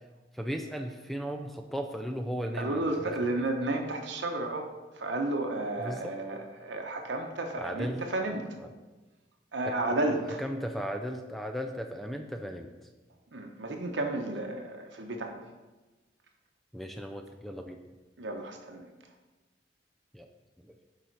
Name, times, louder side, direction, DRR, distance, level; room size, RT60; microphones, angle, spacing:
voice 1, 0.3-3.2 5.8-6.1 7.6-8.0 8.6-8.7 9.6-9.7 10.4-12.7 16.7-17.8 20.1-20.3 20.6-20.7, equal, ahead, 4 dB, 0.3 m, -36 dB
voice 2, 2.6-8.4 9.5-10.4 13.3-15.4 18.2-18.9, right 2 dB, 90° right, 3 dB, 0.8 m, -32 dB
6.7 x 4.9 x 4.5 m, 1.2 s
head